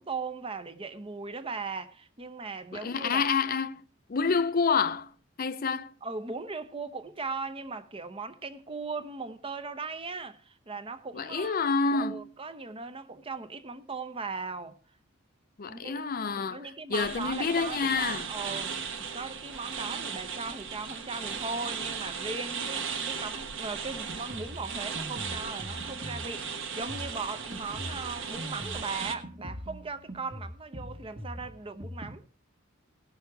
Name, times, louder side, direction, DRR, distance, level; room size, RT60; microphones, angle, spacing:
voice 1, 0.0-3.3 6.0-11.6 11.9-14.8 15.7-16.0 16.4-32.2, right 4 dB, 25° right, 0.7 m, -38 dB
voice 2, 2.7-3.8 4.1-5.1 5.4-5.9 11.1-12.3 15.6-18.3, left 5 dB, 45° left, 0.5 m, -28 dB
sound 1, 16.9-29.2, right 6 dB, 65° right, 1.2 m, -37 dB
Drum kit, 23.9-32.2, equal, 45° right, 1.4 m, -43 dB
17.5 x 6.4 x 4.7 m
head